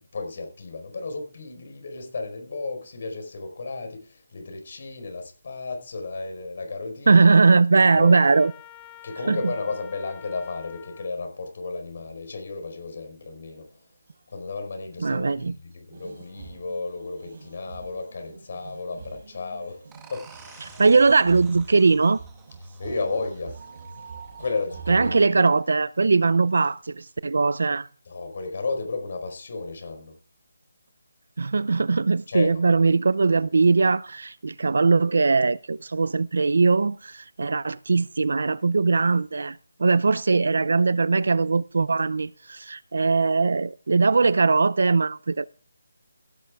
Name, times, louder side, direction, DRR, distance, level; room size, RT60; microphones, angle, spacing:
voice 1, 0.0-7.2 7.9-8.2 9.0-13.7 14.3-19.8 20.1-20.8 22.8-23.6 24.4-25.4 28.0-30.2 32.3-32.7, left 3 dB, 40° left, 4.7 m, -33 dB
voice 2, 7.1-8.5 9.3-9.5 15.0-15.6 20.8-22.2 24.9-27.9 31.4-45.5, right 4 dB, 60° right, 0.5 m, -20 dB
Trumpet, 7.7-11.1, left 12 dB, 10° left, 0.8 m, -47 dB
sound 1, 12.0-12.1 13.5-13.8 14.1-14.2 15.9-25.2, right 5 dB, 40° right, 5.6 m, -43 dB
sound 2, 19.9-25.3, right 6 dB, 5° right, 1.3 m, -52 dB
16.5 x 9.1 x 3.6 m
hypercardioid pair, 175°, 0 cm